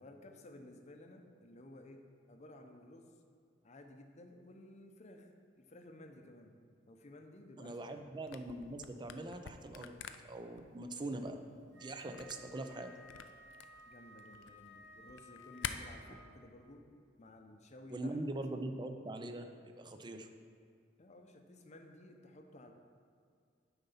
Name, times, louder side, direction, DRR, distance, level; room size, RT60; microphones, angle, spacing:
voice 1, 0.0-2.0 2.3-3.1 3.6-5.3 5.6-6.5 6.9-8.1 13.9-16.9 17.2-18.2 21.0-22.7, left 1 dB, 40° left, 4 dB, 0.7 m, -55 dB
voice 2, 7.6-9.9 10.2-11.4 11.7-12.9 17.9-20.3, right 2 dB, 25° right, 6 dB, 0.5 m, -42 dB
Camera, 8.2-15.7, left 9 dB, 85° left, 0.4 m, -48 dB
Wind instrument woodwind instrument, 11.7-16.4, equal, 65° right, 1.1 m, -57 dB
9.2 x 4.0 x 5.6 m, 2.2 s
head